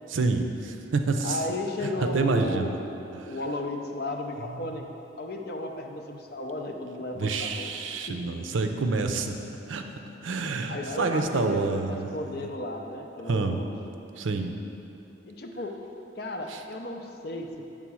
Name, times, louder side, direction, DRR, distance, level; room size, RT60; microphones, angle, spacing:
voice 1, 0.1-1.4 2.0-2.8 4.6-4.7 7.2-9.3 9.7-9.8 10.2-12.1 13.3-13.6 14.2-14.5 16.5-16.6, right 3 dB, 85° right, 5 dB, 0.5 m, -27 dB
voice 2, 1.2-2.8 3.3-4.9 5.2-7.7 8.1-8.2 10.7-13.7 15.3-15.8 16.1-17.7, left 2 dB, 55° left, 3 dB, 0.6 m, -34 dB
8.3 x 3.7 x 6.1 m, 2.9 s
head